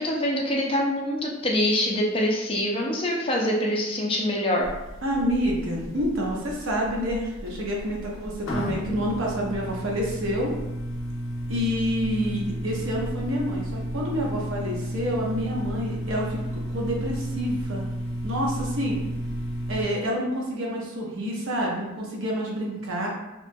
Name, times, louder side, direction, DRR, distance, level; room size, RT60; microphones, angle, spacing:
voice 1, 0.0-4.7, left 1 dB, 25° left, -2 dB, 0.4 m, -25 dB
sound 1, 4.6-19.9, equal, 70° left, 0.6 m, -33 dB
voice 2, 5.0-10.6 11.5-17.9 18.2-19.0 19.7-23.1, equal, 65° right, -2 dB, 0.6 m, -28 dB
2.9 x 2.2 x 2.6 m, 0.97 s
head